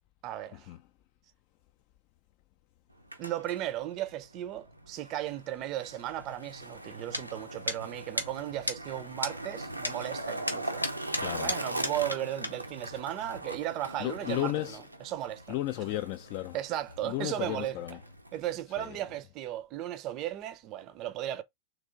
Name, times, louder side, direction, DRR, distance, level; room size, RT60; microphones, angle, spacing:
voice 1, 0.2-0.7 3.2-10.9 11.4-14.5 15.0-15.4 16.5-17.8 18.3-21.4, right 13 dB, 40° right, 0.5 m, -36 dB
Skateboard, 2.9-18.6, right 1 dB, 85° right, 0.5 m, -41 dB
sound 1, 7.1-7.2 7.7-7.8 8.2-8.3 8.7-8.8 9.2-9.3 9.8-10.0 10.5-12.2 12.4-12.5, left 1 dB, 85° left, 0.7 m, -32 dB
voice 2, 11.2-11.6 14.0-14.8 15.5-16.6 17.0-18.0 18.8-19.0, left 15 dB, 45° left, 0.4 m, -34 dB
3.3 x 3.1 x 3.5 m
figure-of-eight pair, 90°, 0 cm